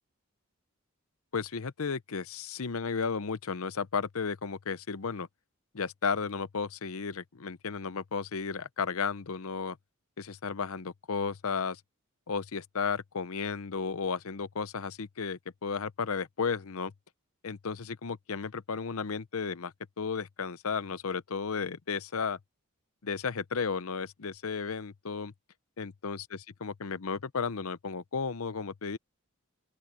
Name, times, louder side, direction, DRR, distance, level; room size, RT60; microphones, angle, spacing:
voice 1, 1.3-5.3 5.7-9.8 10.2-11.8 12.3-16.9 17.4-22.4 23.0-25.3 25.8-26.2 26.6-29.0, left 5 dB, 75° left, 0.7 m, -34 dB
open air
head